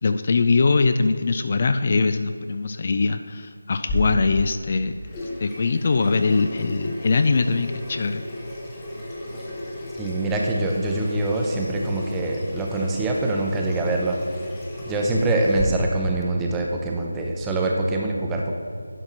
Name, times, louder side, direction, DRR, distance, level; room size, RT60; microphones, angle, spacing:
voice 1, 0.0-5.0 5.4-8.2, left 4 dB, 40° left, 9 dB, 0.3 m, -22 dB
Water tap faucet / Sink (filling or washing), 3.9-15.6, left 1 dB, 15° left, 1.3 m, -34 dB
voice 2, 10.0-14.2 14.8-18.5, right 2 dB, 10° right, 0 dB, 0.7 m, -24 dB
11.0 x 5.8 x 3.9 m, 2.2 s
figure-of-eight pair, 165°, 0 cm